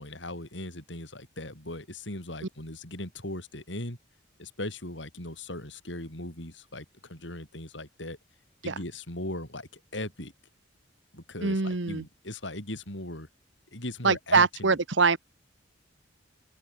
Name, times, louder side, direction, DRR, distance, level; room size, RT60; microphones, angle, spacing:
voice 1, 0.0-4.0 4.4-8.2 8.6-10.3 11.1-13.3 13.7-14.7, left 1 dB, 65° left, 7.9 m, -38 dB
voice 2, 11.4-12.0 14.0-15.2, right 4 dB, 70° right, 1.3 m, -23 dB
open air
head